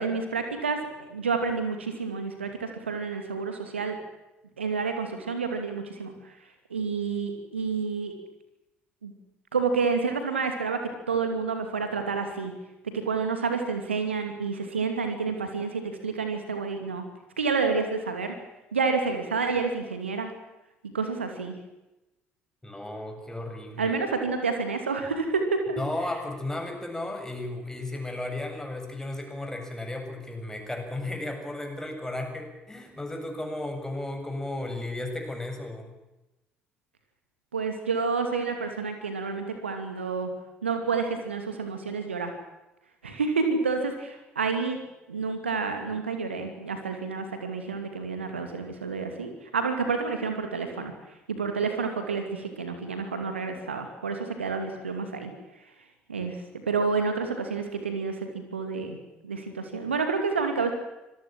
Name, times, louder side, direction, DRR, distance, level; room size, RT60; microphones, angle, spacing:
voice 1, 0.0-4.0 4.6-6.3 6.7-8.1 9.0-9.1 9.5-12.5 13.1-17.0 17.4-18.3 18.7-20.3 20.9-21.5 23.8-25.8 37.5-40.3 40.6-42.3 43.0-44.8 45.1-50.9 51.3-55.3 56.1-56.4 56.7-59.0 59.2-60.7, right 4 dB, 80° right, 6 dB, 2.6 m, -29 dB
voice 2, 22.6-24.1 25.8-35.9, left 2 dB, 10° left, 4 dB, 7.2 m, -34 dB
26.0 x 18.0 x 7.5 m, 0.98 s
figure-of-eight pair, 50°, 6 cm